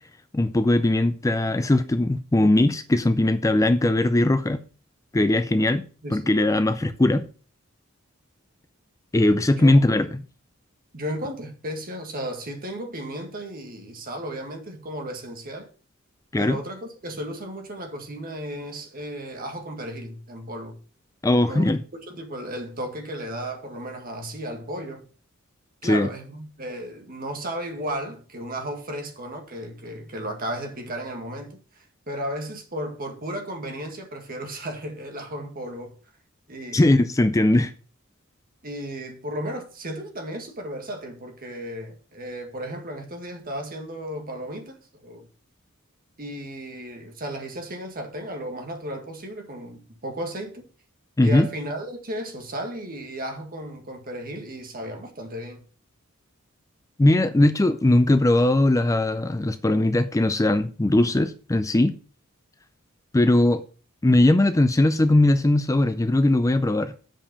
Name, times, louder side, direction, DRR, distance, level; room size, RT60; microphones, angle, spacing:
voice 1, 0.3-4.6 5.1-5.8 6.1-7.3 9.1-10.2 16.3-16.6 21.2-21.8 25.8-26.1 36.7-37.7 51.2-51.5 57.0-61.9 63.1-63.6 64.0-66.9, left 1 dB, 15° left, 0.4 m, -20 dB
voice 2, 6.0-6.4 9.6-9.8 10.9-15.7 16.4-20.8 21.4-21.7 22.1-25.0 25.8-35.9 36.5-36.9 38.6-45.3 46.2-50.7 51.2-55.6, right 1 dB, 45° right, 1.9 m, -34 dB
7.3 x 5.3 x 6.9 m
head